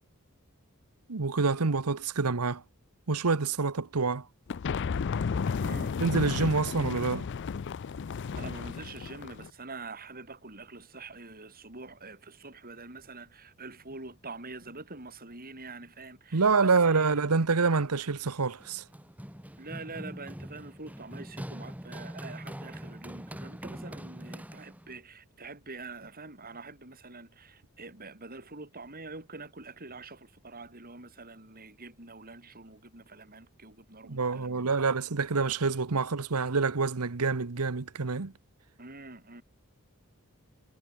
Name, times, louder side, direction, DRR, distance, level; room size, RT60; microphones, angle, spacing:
voice 1, 1.1-2.6 3.1-4.2 6.0-7.3 16.3-18.8 34.0-38.3, right 4 dB, 85° right, 1.1 m, -27 dB
sound 1, 4.5-9.5, left 5 dB, 55° left, 0.4 m, -33 dB
voice 2, 5.6-5.9 8.3-17.2 19.6-34.7 38.8-39.4, right 3 dB, 40° right, 7.7 m, -45 dB
Run, 18.6-25.0, equal, 5° right, 1.6 m, -43 dB
head